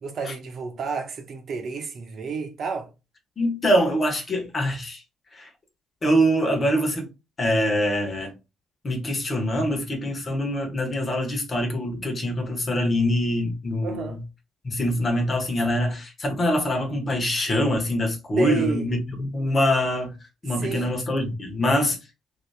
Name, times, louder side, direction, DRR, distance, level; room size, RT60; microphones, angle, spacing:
voice 1, 0.0-2.9 13.8-14.2 18.4-18.8 20.6-20.9, right 4 dB, 55° right, 0.9 m, -30 dB
voice 2, 3.4-5.0 5.3-5.5 6.0-7.1 7.4-8.3 8.8-14.2 14.6-20.2 20.4-22.0, equal, 40° left, 1.4 m, -24 dB
2.9 x 2.8 x 3.4 m
hypercardioid pair, 50°, 0 cm